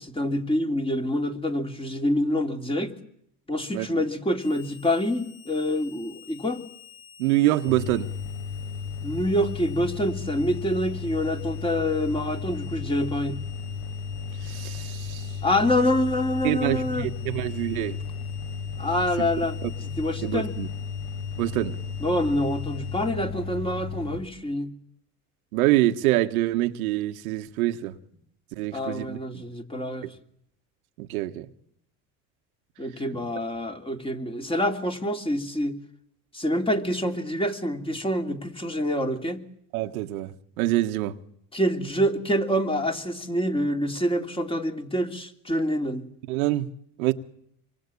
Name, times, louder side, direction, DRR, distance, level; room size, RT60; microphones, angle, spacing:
voice 1, 0.0-2.9 3.5-6.6 9.0-13.4 15.4-17.1 18.8-20.6 22.0-24.7 28.7-30.1 32.8-35.7 36.3-39.4 41.5-46.0, left 1 dB, 15° left, 2.9 m, -26 dB
Harmonica, 4.4-23.1, left 8 dB, 80° left, 5.3 m, -50 dB
voice 2, 7.2-8.1 14.4-15.3 16.4-18.0 19.2-19.3 20.2-20.7 21.4-21.7 25.5-27.9 28.6-29.4 31.0-31.4 39.7-40.3 40.6-41.2 46.3-46.7 47.0-47.1, right 16 dB, 85° right, 1.6 m, -25 dB
sound 1, 7.7-24.2, left 5 dB, 60° left, 6.8 m, -34 dB
26.5 x 23.0 x 8.5 m
supercardioid pair, 100°, 42 cm